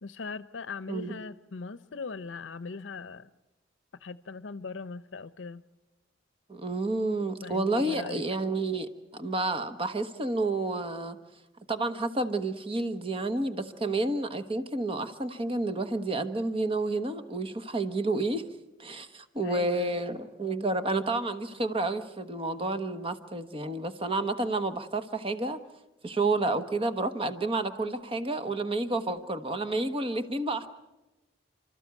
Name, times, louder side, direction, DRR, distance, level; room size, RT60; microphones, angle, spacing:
voice 1, 0.0-3.3 4.0-5.6 7.4-8.2 19.4-20.0 29.2-29.3, left 4 dB, 75° left, 15 dB, 0.7 m, -40 dB
voice 2, 0.9-1.2 6.5-11.2 11.7-18.4 18.8-25.6 26.0-30.7, right 2 dB, 30° right, 9 dB, 1.2 m, -30 dB
30.0 x 13.5 x 8.3 m, 1.0 s
head